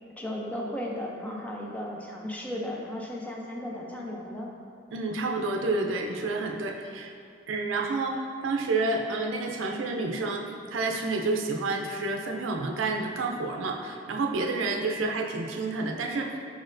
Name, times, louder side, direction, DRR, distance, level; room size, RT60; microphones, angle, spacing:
voice 1, 0.2-4.5, left 1 dB, 5° left, -2 dB, 0.4 m, -35 dB
voice 2, 4.9-7.1 7.5-10.4 10.7-16.3, right 3 dB, 85° right, 2 dB, 0.4 m, -29 dB
4.8 x 4.3 x 2.5 m, 2.4 s
head